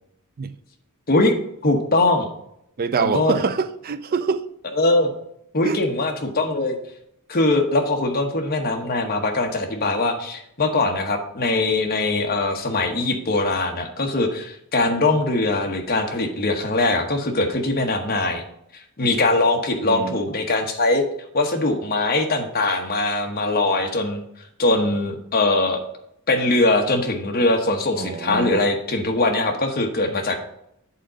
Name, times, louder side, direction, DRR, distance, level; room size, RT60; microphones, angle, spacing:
voice 1, 1.6-2.3 3.0-3.4 4.8-5.1 5.5-6.7 7.3-18.4 19.0-21.0 21.3-24.2 24.6-25.8 26.3-30.4, left 2 dB, 45° left, 1.0 m, -21 dB
voice 2, 2.8-4.5 5.6-5.8 19.8-20.2 27.9-28.7, right 5 dB, 40° right, 0.4 m, -25 dB
8.5 x 3.8 x 5.1 m
head